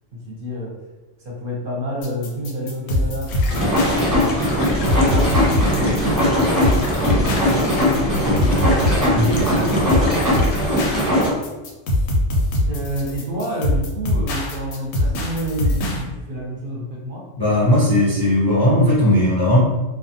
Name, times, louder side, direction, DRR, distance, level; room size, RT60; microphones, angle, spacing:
voice 1, 0.1-0.8 1.2-5.5 5.7-8.7 12.7-17.3, equal, 50° right, -4 dB, 0.7 m, -29 dB
sound 1, 2.0-16.0, left 1 dB, 85° left, 1.0 m, -22 dB
sound 2, 3.3-11.4, left 1 dB, 65° left, 0.7 m, -32 dB
Wooden Gear inside of old Watermill, 3.5-11.3, equal, 15° right, 0.9 m, -20 dB
voice 2, 9.1-9.8 17.4-19.6, left 1 dB, 35° left, -7 dB, 0.4 m, -17 dB
2.4 x 2.3 x 2.7 m, 1.1 s
omnidirectional pair, 1.3 m